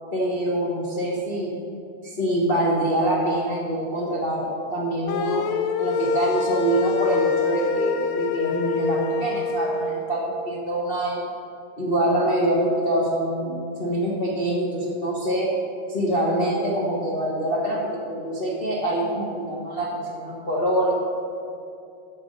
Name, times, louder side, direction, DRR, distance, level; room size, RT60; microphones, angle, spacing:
voice 1, 0.1-1.5 2.0-5.5 5.8-11.3 11.8-15.5 15.9-20.9, right 1 dB, 50° left, -7 dB, 0.6 m, -25 dB
sound 1, 5.1-9.9, left 6 dB, 85° left, 2.3 m, -25 dB
10.5 x 7.0 x 6.5 m, 2.6 s
omnidirectional pair, 3.7 m